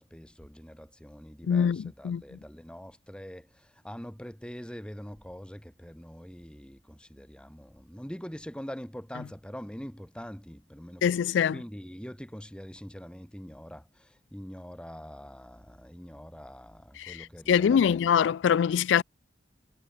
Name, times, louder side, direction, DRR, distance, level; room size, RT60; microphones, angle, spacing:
voice 1, 0.0-18.2, equal, 5° left, 2.0 m, -44 dB
voice 2, 1.5-2.2 11.0-11.6 17.0-17.2 17.5-19.0, left 8 dB, 85° left, 0.3 m, -23 dB
head